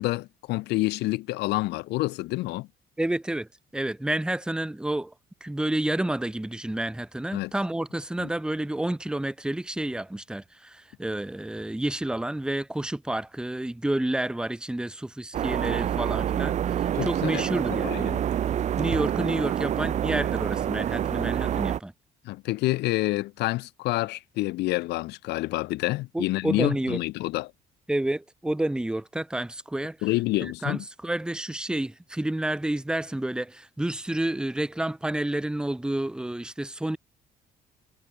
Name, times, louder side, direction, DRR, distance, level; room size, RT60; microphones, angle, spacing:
voice 1, 0.0-2.7 7.3-7.5 8.2-8.3 17.0-17.4 17.7-18.2 22.2-27.5 30.0-30.8, left 19 dB, 90° left, 3.1 m, -28 dB
voice 2, 3.0-5.1 5.4-18.1 18.8-21.9 26.1-27.0 27.9-30.0 30.4-37.0, right 1 dB, 5° right, 1.0 m, -30 dB
sound 1, 15.3-21.8, right 10 dB, 45° right, 0.6 m, -27 dB
cardioid pair, 110°, 17 cm